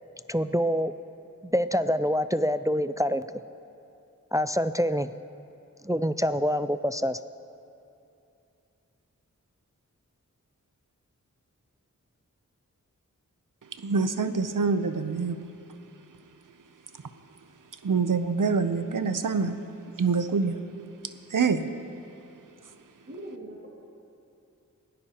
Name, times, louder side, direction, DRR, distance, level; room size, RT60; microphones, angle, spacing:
voice 1, 0.3-0.9 1.4-3.2 4.3-5.1 5.8-7.2, equal, 10° right, 0.3 m, -26 dB
voice 2, 13.7-15.4 17.8-19.6 20.0-20.6 21.3-21.7, right 5 dB, 80° right, 0.7 m, -25 dB
voice 3, 19.8-20.1 23.1-23.7, right 1 dB, 50° right, 2.3 m, -42 dB
24.5 x 17.0 x 2.9 m
wide cardioid pair, 50°, 31 cm